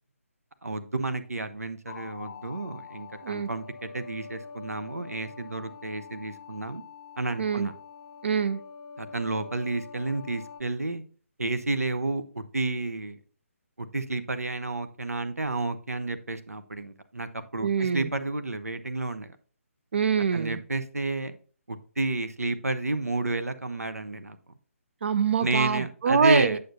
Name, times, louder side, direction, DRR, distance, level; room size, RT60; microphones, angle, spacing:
voice 1, 0.6-6.8 7.2-7.7 9.0-11.0 11.4-13.2 13.8-19.4 20.3-21.4 21.7-24.4 25.4-26.6, right 2 dB, 85° right, 10 dB, 0.8 m, -31 dB
sound 1, 1.9-10.6, left 6 dB, 30° left, 0.5 m, -45 dB
voice 2, 8.2-8.6 17.6-18.1 19.9-20.6 25.0-26.6, right 6 dB, 50° right, 13 dB, 0.5 m, -25 dB
8.7 x 6.6 x 2.6 m, 0.41 s
figure-of-eight pair, 145°, 8 cm